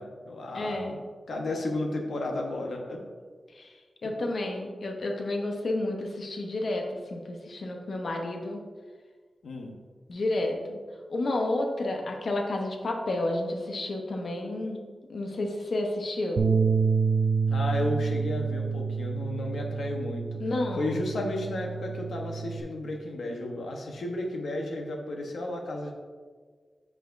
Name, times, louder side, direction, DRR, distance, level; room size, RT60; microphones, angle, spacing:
voice 1, 0.0-3.0 9.4-9.7 17.5-20.4 20.8-25.9, left 1 dB, 90° left, 2 dB, 0.9 m, -33 dB
voice 2, 0.5-0.9 3.5-3.7 4.0-8.6 10.1-10.8 11.1-14.8 15.1-16.5 20.4-21.0, left 2 dB, 60° left, 2 dB, 0.8 m, -31 dB
Bass guitar, 16.4-22.6, right 5 dB, 60° right, 0.4 m, -28 dB
7.9 x 4.9 x 2.6 m, 1.6 s
wide cardioid pair, 140°, 0 cm